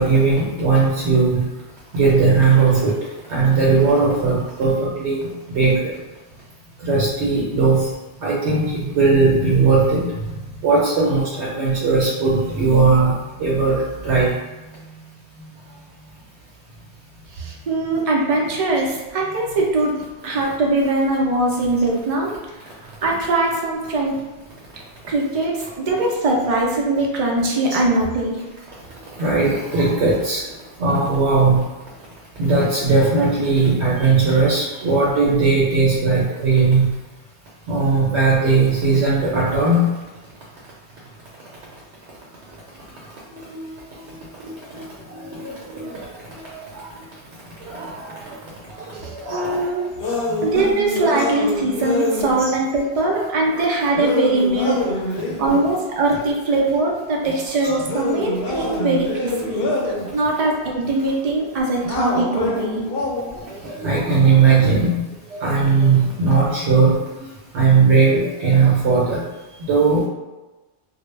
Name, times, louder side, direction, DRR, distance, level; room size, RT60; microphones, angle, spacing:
voice 1, 0.0-1.4 1.9-2.9 3.3-4.7 5.0-5.2 5.5-5.8 6.8-7.8 8.2-10.1 10.6-13.1 13.4-14.3 29.2-30.4 30.8-31.6 32.4-36.9 37.7-39.9 43.5-43.7 45.3-45.9 47.7-47.9 49.2-49.6 53.1-53.2 53.5-53.6 57.6-57.7 63.8-65.0 65.4-66.9 67.5-69.2 69.7-70.1, right 4 dB, 85° right, -5 dB, 0.9 m, -17 dB
voice 2, 17.3-22.3 22.8-24.1 25.1-28.4 49.0-49.9 50.4-55.0 55.4-62.8, right 2 dB, 65° right, -1 dB, 0.3 m, -21 dB
sound 1, 50.0-52.4 54.0-55.6 57.8-60.1 61.8-63.4, left 2 dB, 65° left, 0.7 m, -25 dB
2.1 x 2.0 x 3.1 m, 1.1 s
omnidirectional pair, 1.1 m